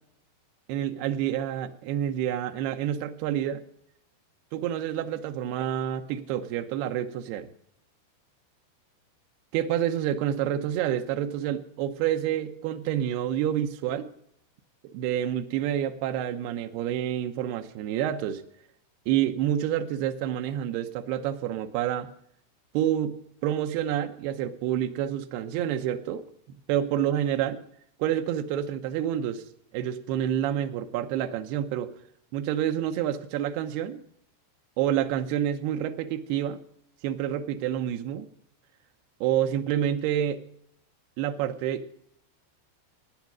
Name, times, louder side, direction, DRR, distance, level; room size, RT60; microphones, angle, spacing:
voice 1, 0.7-3.6 4.5-7.5 9.5-14.1 14.8-18.4 19.1-22.1 22.7-26.3 26.7-27.6 28.0-29.4 29.7-31.9 32.3-34.0 34.8-36.6 37.0-38.3 39.2-40.4 41.2-42.0, right 10 dB, 75° right, 7 dB, 2.4 m, -28 dB
16.0 x 9.4 x 6.1 m, 0.69 s
omnidirectional pair, 5.6 m